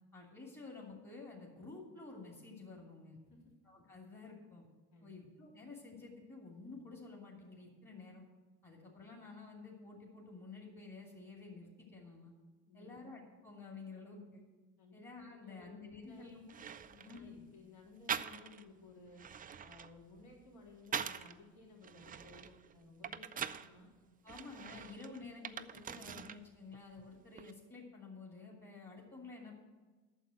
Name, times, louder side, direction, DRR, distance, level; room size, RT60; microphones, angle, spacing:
voice 1, 0.1-3.2 3.6-4.6 5.0-8.2 8.6-12.3 12.7-14.4 14.9-16.4 17.0-17.4 24.2-29.6, left 3 dB, 25° left, -1 dB, 2.5 m, -51 dB
voice 2, 12.7-13.0 14.8-15.0 15.3-16.4 16.9-19.2 19.6-23.9, left 3 dB, 60° left, -3 dB, 3.5 m, -58 dB
sound 1, 16.0-16.1 16.5-17.2 18.1-18.7 19.1-21.4 21.8-23.7 24.3-26.4 26.7-27.5, right 7 dB, 20° right, 0.4 m, -43 dB
9.1 x 6.7 x 7.8 m, 1.3 s
supercardioid pair, 80°, 41 cm